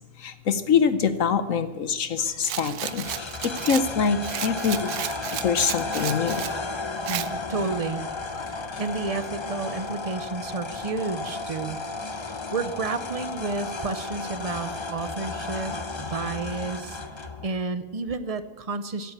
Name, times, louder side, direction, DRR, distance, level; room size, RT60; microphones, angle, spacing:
voice 1, 0.0-4.9 5.4-6.4 8.2-8.8, left 6 dB, 65° left, 11 dB, 1.2 m, -25 dB
Rattle, 2.4-6.6 7.1-7.3, right 12 dB, 85° right, 1.2 m, -33 dB
sound 1, 2.6-17.5, left 3 dB, 25° left, 0.7 m, -34 dB
voice 2, 7.1-8.0 8.5-11.8 12.2-17.0 17.4-19.1, right 4 dB, 40° right, 12 dB, 0.5 m, -31 dB
16.0 x 10.0 x 8.7 m, 1.2 s
omnidirectional pair, 1.6 m